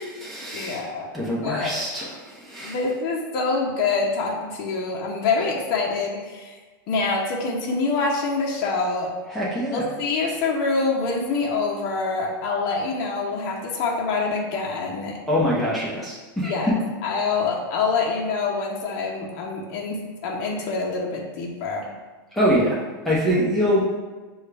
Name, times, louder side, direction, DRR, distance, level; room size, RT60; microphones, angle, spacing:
voice 1, 0.0-0.8 1.1-2.8 9.3-9.8 15.3-16.5 22.3-22.8 23.0-23.8, equal, ahead, -8 dB, 0.8 m, -24 dB
voice 2, 0.5-1.1 1.4-1.7 2.6-6.6 6.9-9.1 9.7-15.2 16.4-21.9, left 4 dB, 45° left, -1 dB, 0.7 m, -26 dB
6.3 x 2.3 x 3.3 m, 1.3 s
supercardioid pair, 150°, 12 cm